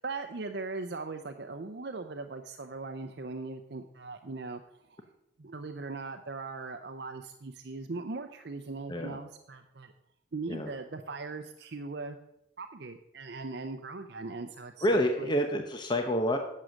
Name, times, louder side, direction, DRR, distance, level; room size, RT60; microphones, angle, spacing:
voice 1, 0.0-5.0 5.4-9.9 10.3-12.2 12.6-14.9 15.2-15.3, right 3 dB, 60° right, 6 dB, 0.6 m, -39 dB
voice 2, 14.8-16.4, equal, 25° left, 5 dB, 0.8 m, -28 dB
11.0 x 7.5 x 6.4 m, 0.85 s
head